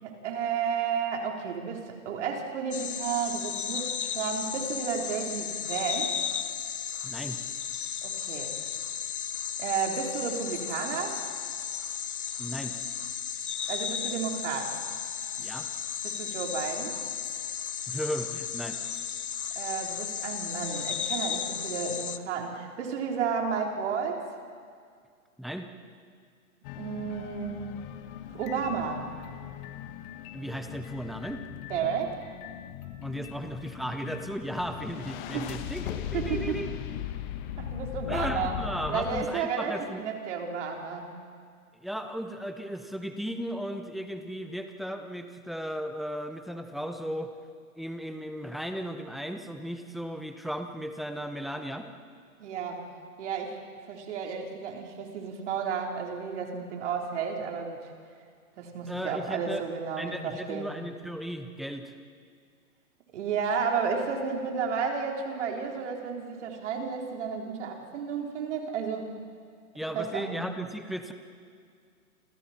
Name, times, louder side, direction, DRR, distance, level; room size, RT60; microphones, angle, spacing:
voice 1, 0.0-6.1 8.0-8.6 9.6-11.2 13.7-14.8 16.0-17.0 19.6-24.2 26.8-27.7 28.3-29.1 31.7-32.2 35.3-35.5 36.1-36.5 37.6-38.6 38.9-41.1 52.4-52.9 53.2-53.6 53.9-57.9 58.6-60.8 63.1-69.2 69.9-70.4, right 6 dB, 50° right, 1 dB, 3.9 m, -32 dB
sound 1, 2.7-22.2, left 8 dB, 80° left, 1.3 m, -34 dB
voice 2, 7.0-7.4 12.4-12.7 15.4-15.7 17.9-18.8 25.4-25.7 30.3-31.4 33.0-36.7 38.1-40.0 41.8-47.3 47.8-51.9 58.9-59.6 60.0-61.9 69.7-71.1, equal, ahead, 7 dB, 0.6 m, -35 dB
sound 2, 26.6-39.3, left 11 dB, 30° left, 1.3 m, -39 dB
29.0 x 27.0 x 4.4 m, 2.1 s
hypercardioid pair, 130°, 44 cm